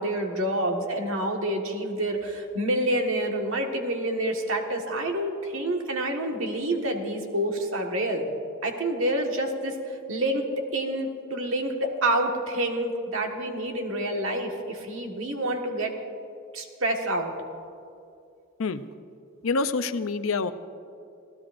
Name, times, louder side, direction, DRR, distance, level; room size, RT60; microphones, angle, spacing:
voice 1, 0.0-8.2 8.6-16.0 16.5-17.3, right 1 dB, 80° right, 2 dB, 1.6 m, -28 dB
voice 2, 19.4-20.5, left 4 dB, 85° left, 11 dB, 0.6 m, -26 dB
26.5 x 15.5 x 2.6 m, 2.5 s
head